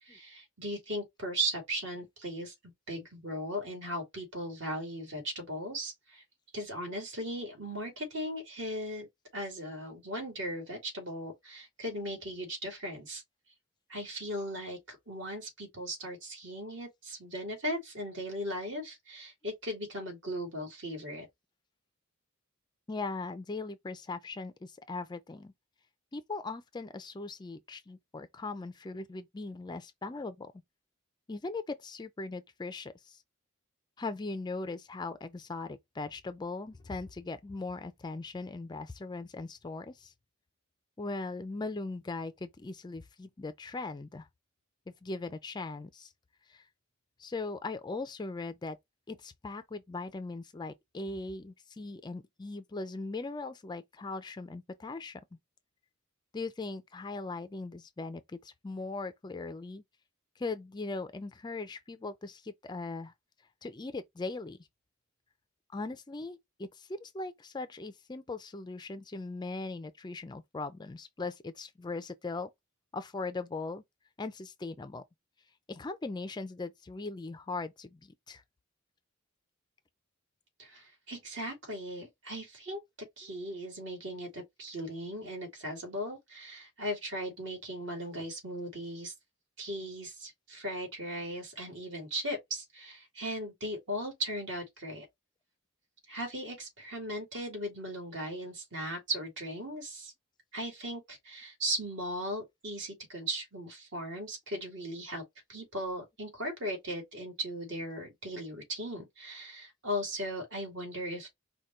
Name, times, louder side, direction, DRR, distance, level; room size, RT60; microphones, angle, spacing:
voice 1, 0.0-2.5 2.9-6.2 6.5-9.1 9.3-13.2 13.9-21.3 80.6-82.8 83.2-89.1 89.6-95.1 96.1-100.1 100.5-105.2 105.5-111.4, equal, 55° right, 2.3 m, -37 dB
voice 2, 22.9-25.5 26.1-30.5 31.3-33.2 34.0-40.1 41.0-44.3 45.0-46.1 46.5-46.7 47.2-48.8 49.1-55.2 56.3-59.8 60.4-63.1 63.6-64.6 65.7-72.5 72.9-73.8 74.2-75.0 75.7-78.4, left 3 dB, 20° left, 0.4 m, -39 dB
5.0 x 2.2 x 4.2 m
head